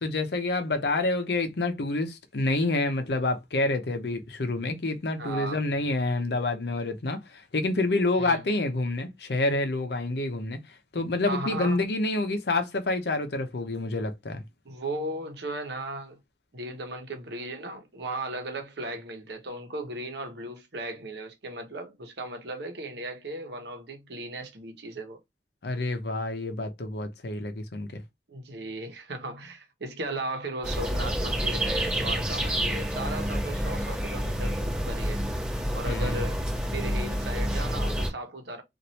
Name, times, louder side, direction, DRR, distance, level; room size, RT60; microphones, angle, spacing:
voice 1, 0.0-10.6 10.9-14.4 25.6-28.0 35.9-36.3, left 2 dB, 65° left, 0.7 m, -28 dB
voice 2, 5.2-5.6 8.2-8.4 11.3-11.8 14.6-16.2 16.5-25.2 28.3-35.2 35.7-36.4 36.7-38.6, right 1 dB, 70° right, 0.9 m, -36 dB
sound 1, 30.6-38.1, equal, 10° right, 1.5 m, -28 dB
3.1 x 2.5 x 2.7 m
head